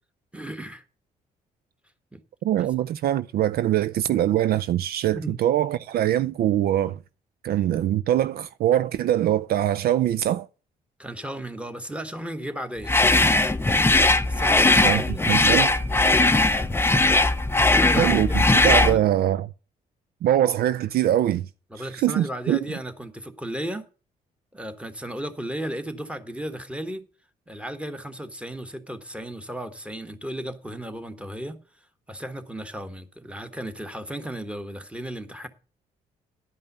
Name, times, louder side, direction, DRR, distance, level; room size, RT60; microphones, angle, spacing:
voice 1, 0.3-0.8 2.1-2.2 2.6-2.7 5.1-5.4 11.0-12.9 13.7-15.2 17.6-18.4 18.9-19.0 21.7-23.8 24.5-27.1 27.5-31.6 32.1-35.5, right 1 dB, 5° right, 1.4 m, -35 dB
voice 2, 2.4-7.0 7.4-10.5 14.8-15.0 15.3-15.8 18.0-19.5 20.2-21.5 21.9-22.6, right 12 dB, 65° right, 0.4 m, -23 dB
sound 1, 12.9-19.0, left 2 dB, 15° left, 0.6 m, -19 dB
11.0 x 5.4 x 6.7 m
supercardioid pair, 65°, 17 cm